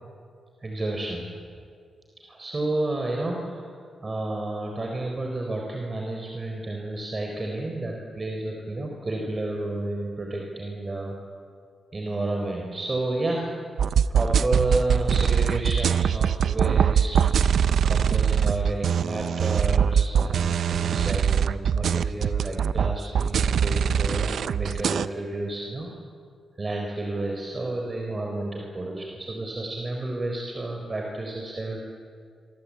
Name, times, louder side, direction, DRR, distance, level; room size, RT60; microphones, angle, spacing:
voice 1, 0.6-1.3 2.2-11.2 11.9-13.5 14.1-17.4 17.8-25.9 26.6-31.8, right 2 dB, 30° right, 1 dB, 4.2 m, -31 dB
sound 1, 13.8-25.1, right 7 dB, 75° right, 0.7 m, -22 dB
26.0 x 23.5 x 8.7 m, 2.2 s
cardioid pair, 95°, 0 cm